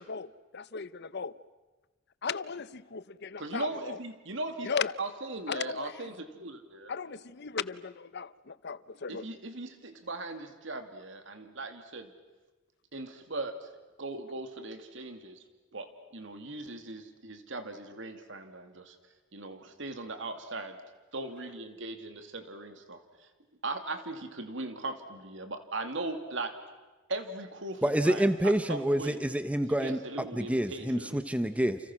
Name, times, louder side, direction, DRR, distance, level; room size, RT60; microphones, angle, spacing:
voice 1, 0.0-1.3 2.2-2.7 2.9-4.0 4.6-5.0 5.5-6.1 6.9-9.3, left 6 dB, 60° left, 17 dB, 0.8 m, -36 dB
voice 2, 3.4-4.7 5.0-6.9 9.1-12.1 12.9-13.7 14.0-15.4 15.7-19.0 19.3-20.8 21.1-23.3 23.6-26.5 27.1-29.2 29.8-31.2, right 2 dB, 70° right, 7 dB, 2.6 m, -39 dB
voice 3, 27.8-30.0 30.3-31.8, right 1 dB, 5° right, 10 dB, 1.0 m, -27 dB
30.0 x 29.5 x 6.2 m, 1.2 s
head